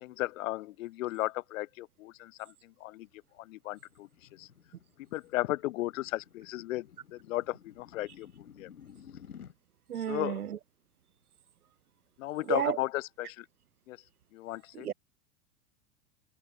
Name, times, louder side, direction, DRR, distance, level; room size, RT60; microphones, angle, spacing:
voice 1, 0.0-3.1 3.4-4.5 5.1-8.7 9.9-10.4 12.2-13.5 13.9-14.0 14.3-14.9, left 17 dB, 65° left, 1.1 m, -35 dB
sound 1, 3.1-9.5, left 8 dB, 85° left, 2.4 m, -54 dB
voice 2, 9.9-10.6 12.5-12.8 14.7-14.9, right 9 dB, 85° right, 1.0 m, -31 dB
hypercardioid pair, 95°, 43 cm